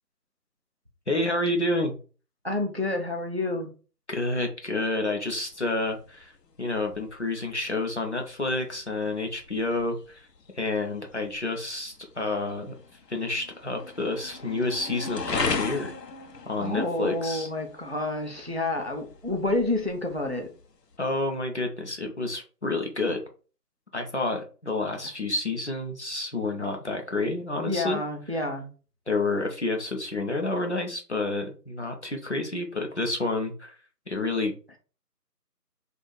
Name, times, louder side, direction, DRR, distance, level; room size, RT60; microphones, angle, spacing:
voice 1, 1.1-1.9 4.1-6.3 6.6-10.3 10.5-12.7 13.1-15.9 16.5-17.5 21.0-23.2 23.9-28.0 29.1-33.8 34.1-34.8, left 2 dB, 45° left, 3 dB, 0.7 m, -29 dB
voice 2, 2.4-3.7 16.6-20.5 27.7-28.7, left 2 dB, 40° right, 3 dB, 0.5 m, -29 dB
sound 1, 5.5-21.0, left 4 dB, 85° left, 0.8 m, -39 dB
3.9 x 2.5 x 3.1 m, 0.36 s
figure-of-eight pair, 170°, 48 cm